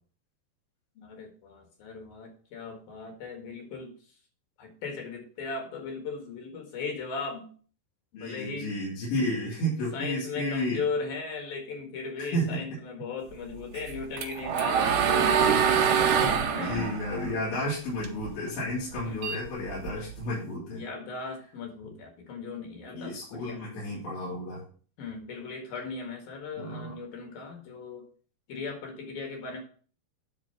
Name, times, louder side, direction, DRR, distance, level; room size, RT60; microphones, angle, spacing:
voice 1, 1.0-3.9 4.6-7.5 8.1-8.7 9.9-15.5 16.2-17.0 19.0-19.3 20.7-23.6 25.0-28.0 28.5-29.6, left 4 dB, 60° left, 3 dB, 3.3 m, -37 dB
voice 2, 8.2-10.8 12.2-12.6 14.8-14.9 16.1-20.8 22.9-24.6 26.6-27.0, equal, 80° left, -9 dB, 5.6 m, -32 dB
sound 1, 13.8-18.3 18.7-20.2, right 7 dB, 70° right, 2.0 m, -25 dB
10.0 x 4.3 x 5.8 m, 0.42 s
omnidirectional pair, 5.0 m